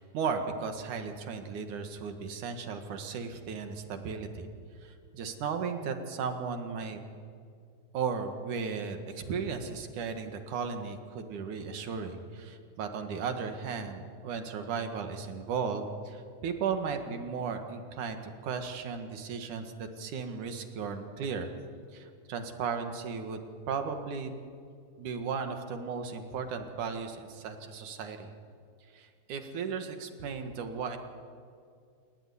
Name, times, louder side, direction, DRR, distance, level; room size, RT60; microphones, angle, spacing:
voice 1, 0.0-4.5 4.8-7.0 7.9-18.2 18.4-21.5 21.9-23.4 23.7-24.4 25.0-28.3 28.9-31.0, right 5 dB, 90° right, 6 dB, 3.3 m, -35 dB
29.0 x 17.0 x 9.8 m, 2.3 s
omnidirectional pair, 3.4 m